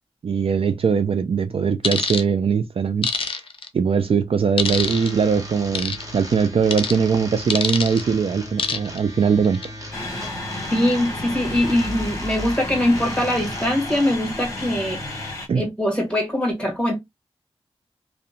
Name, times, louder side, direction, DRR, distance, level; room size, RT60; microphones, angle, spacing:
voice 1, 0.2-3.1 3.7-9.6 15.5-15.6, right 6 dB, 60° right, 0.3 m, -21 dB
sound 1, 1.8-2.2 3.0-3.7 4.6-5.1 5.7-6.0 6.7-7.0 7.5-8.0 8.6-9.0 9.4-9.7, left 5 dB, 55° left, 0.5 m, -24 dB
sound 2, 4.6-15.3, left 1 dB, 30° right, 1.1 m, -37 dB
sound 3, 9.9-15.5, left 1 dB, 30° left, 1.0 m, -32 dB
voice 2, 10.7-15.3 15.5-17.0, left 1 dB, 10° left, 1.5 m, -22 dB
2.7 x 2.1 x 2.5 m
cardioid pair, 60°, 11 cm